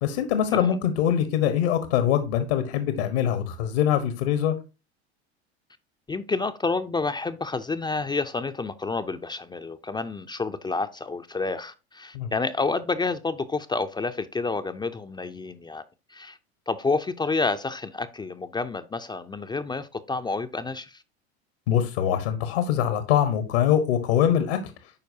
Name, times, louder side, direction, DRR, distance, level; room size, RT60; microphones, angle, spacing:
voice 1, 0.0-4.5 12.1-12.3 21.7-24.6, left 10 dB, 75° left, 1.2 m, -23 dB
voice 2, 6.1-15.8 16.1-16.4 16.7-21.0, left 3 dB, 15° left, 0.5 m, -29 dB
11.5 x 4.5 x 2.7 m
hypercardioid pair, 90°, 33 cm